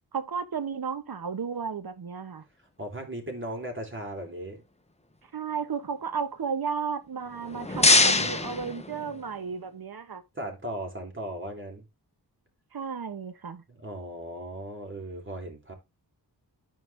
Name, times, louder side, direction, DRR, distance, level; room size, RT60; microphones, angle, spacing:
voice 1, 0.1-2.4 5.3-10.2 12.7-13.6, right 6 dB, 60° right, 1.2 m, -33 dB
voice 2, 2.8-4.6 10.3-11.8 13.7-15.7, right 1 dB, 30° right, 3.4 m, -37 dB
sound 1, 7.3-9.5, left 3 dB, 15° left, 0.9 m, -24 dB
13.5 x 4.7 x 3.4 m
wide cardioid pair, 85°, 41 cm